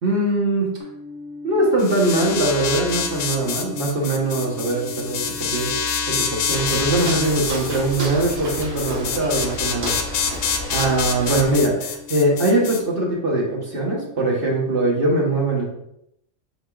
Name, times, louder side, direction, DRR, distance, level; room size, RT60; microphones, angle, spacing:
voice 1, 0.0-0.7 1.4-5.7 6.1-15.6, right 2 dB, 45° right, -3 dB, 1.2 m, -22 dB
sound 1, 0.8-14.9, left 3 dB, 10° left, 0.9 m, -40 dB
sound 2, 1.8-12.8, left 6 dB, 80° left, 1.0 m, -27 dB
Walk footsteps, 6.4-11.7, right 1 dB, 60° right, 1.6 m, -31 dB
5.0 x 4.3 x 2.3 m, 0.78 s
omnidirectional pair, 1.5 m